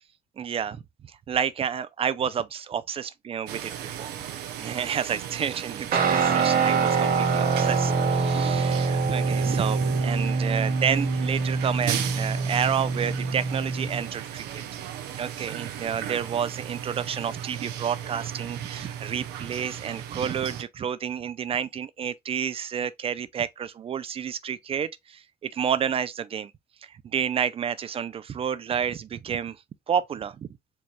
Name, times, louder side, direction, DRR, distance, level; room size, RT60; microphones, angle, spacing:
voice 1, 0.4-0.8 1.3-4.1 4.6-14.6 15.2-26.5 27.1-29.6 29.9-30.5, right 8 dB, 35° right, 0.4 m, -30 dB
sound 1, 3.5-20.6, right 10 dB, 90° right, 0.7 m, -36 dB
Guitar, 5.9-14.1, right 4 dB, 60° right, 1.1 m, -25 dB
4.4 x 2.3 x 3.1 m
cardioid pair, 110°, 17 cm